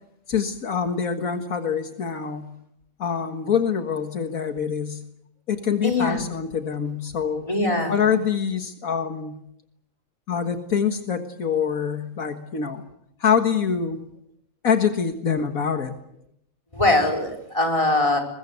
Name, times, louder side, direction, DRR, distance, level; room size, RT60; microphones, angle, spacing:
voice 1, 0.3-2.5 3.0-5.0 5.5-7.5 7.9-9.4 10.3-12.8 13.2-14.1 14.6-15.9, left 7 dB, 80° left, 6 dB, 2.0 m, -25 dB
voice 2, 5.8-6.3 7.5-8.0 16.7-18.2, left 2 dB, 20° left, 4 dB, 5.2 m, -22 dB
22.5 x 21.5 x 8.1 m, 0.76 s
omnidirectional pair, 1.5 m